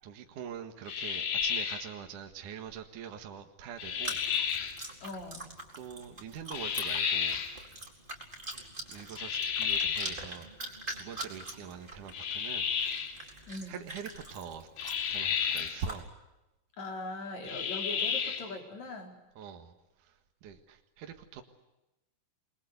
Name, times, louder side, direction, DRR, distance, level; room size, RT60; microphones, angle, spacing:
voice 1, 0.0-4.3 5.8-7.4 8.9-10.5 11.0-12.7 13.7-14.7 15.1-16.1 19.4-19.7 20.0-21.4, right 7 dB, 55° right, 5 dB, 2.7 m, -43 dB
sound 1, 0.9-1.9 3.8-4.8 6.5-7.6 9.2-10.2 12.1-13.2 14.8-15.8 17.4-18.5, left 7 dB, 80° left, 4.6 m, -32 dB
Chewing mastication, 3.9-16.0, right 1 dB, 10° right, 4.1 m, -44 dB
voice 2, 5.0-5.5 13.5-13.8 16.8-19.1, left 2 dB, 40° left, 3 dB, 5.1 m, -40 dB
29.5 x 22.0 x 8.1 m, 0.98 s
omnidirectional pair, 5.1 m